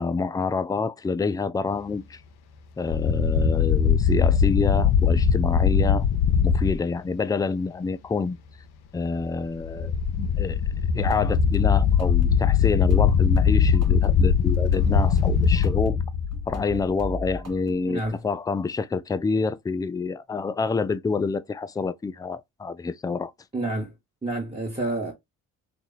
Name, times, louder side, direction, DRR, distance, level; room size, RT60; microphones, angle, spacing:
voice 1, 0.0-2.2 2.8-6.0 6.4-8.4 8.9-10.6 10.9-16.0 16.5-23.3, left 4 dB, 10° left, 0.3 m, -27 dB
sound 1, 2.9-6.8 9.6-16.9, left 7 dB, 60° left, 0.7 m, -21 dB
sound 2, 11.1-18.3, equal, 35° right, 1.4 m, -36 dB
voice 2, 17.9-18.2 23.5-23.9 24.2-25.1, right 2 dB, 15° right, 1.3 m, -29 dB
3.0 x 2.5 x 4.1 m
hypercardioid pair, 40°, 44 cm